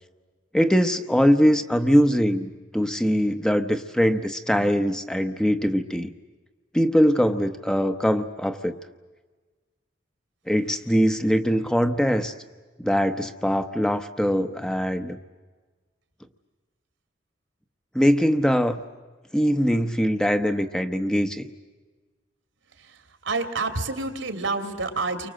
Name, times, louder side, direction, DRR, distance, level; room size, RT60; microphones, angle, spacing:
voice 1, 0.5-6.1 6.7-8.7 10.5-12.3 12.8-15.2 17.9-18.8 19.3-21.4, equal, 5° left, 7 dB, 0.9 m, -22 dB
voice 2, 23.2-25.3, right 3 dB, 80° right, 7 dB, 2.9 m, -28 dB
29.5 x 24.5 x 7.7 m, 1.3 s
head